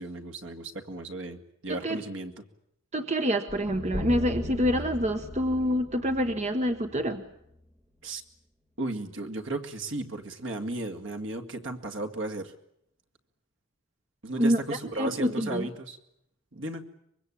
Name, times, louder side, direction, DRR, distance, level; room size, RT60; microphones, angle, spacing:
voice 1, 0.0-2.3 8.0-8.2 8.8-12.5 14.2-16.0 16.5-16.8, right 2 dB, 60° right, 5 dB, 2.1 m, -35 dB
voice 2, 1.7-2.0 2.9-7.2 14.4-14.6 15.0-15.7, equal, 35° right, 7 dB, 1.2 m, -27 dB
sound 1, 3.5-7.6, left 1 dB, 15° right, 2.1 m, -37 dB
24.5 x 22.5 x 8.6 m, 0.76 s
head